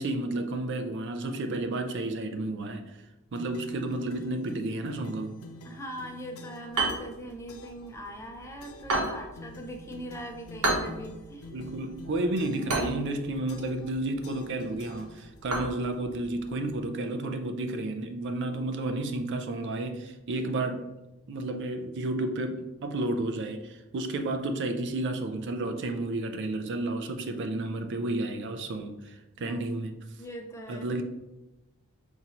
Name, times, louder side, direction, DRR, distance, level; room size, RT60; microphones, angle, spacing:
voice 1, 0.0-3.0 3.3-5.4 11.5-20.9 21.3-30.0 30.7-31.0, right 2 dB, 55° right, 6 dB, 0.4 m, -31 dB
sound 1, 3.4-6.8 7.5-7.9 8.6-9.0 9.4-12.8 13.5-13.9 14.2-15.6, left 1 dB, 70° left, 0.5 m, -47 dB
voice 2, 5.6-11.5 29.4-29.6 30.2-30.9, equal, 10° left, 3 dB, 0.4 m, -41 dB
sound 2, 6.7-16.8, right 2 dB, 80° right, 1.0 m, -35 dB
5.8 x 2.7 x 2.9 m, 1.0 s
head